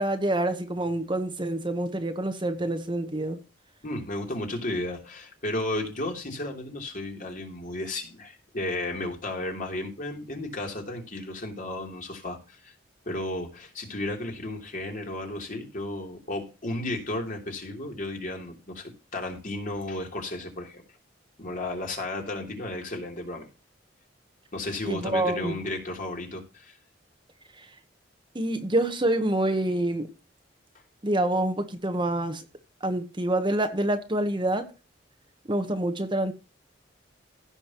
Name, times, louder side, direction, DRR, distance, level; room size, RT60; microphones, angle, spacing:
voice 1, 0.0-3.4 24.9-25.6 27.6-27.7 28.3-30.1 31.0-32.4 32.8-34.7 35.5-36.3, right 1 dB, 25° right, 1.1 m, -27 dB
voice 2, 3.8-12.7 13.0-20.8 21.4-23.5 24.5-26.8, left 2 dB, 45° left, 3.3 m, -33 dB
16.5 x 6.2 x 3.0 m
head